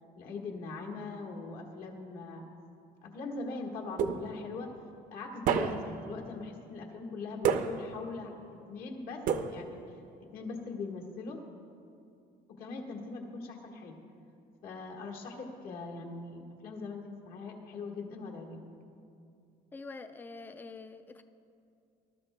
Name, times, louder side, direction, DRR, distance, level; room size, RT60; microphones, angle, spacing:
voice 1, 0.2-2.5 3.0-4.7 5.1-9.2 9.5-9.8 10.2-11.4 12.6-13.9 14.6-18.7, left 3 dB, 60° left, 1 dB, 1.5 m, -41 dB
sound 1, 4.0-4.6 5.5-6.1 7.4-8.1 9.3-9.9, right 7 dB, 55° right, 0.5 m, -30 dB
voice 2, 19.7-21.2, left 3 dB, 10° left, 9 dB, 0.3 m, -45 dB
19.0 x 12.5 x 2.2 m, 2.5 s
cardioid pair, 175°, 17 cm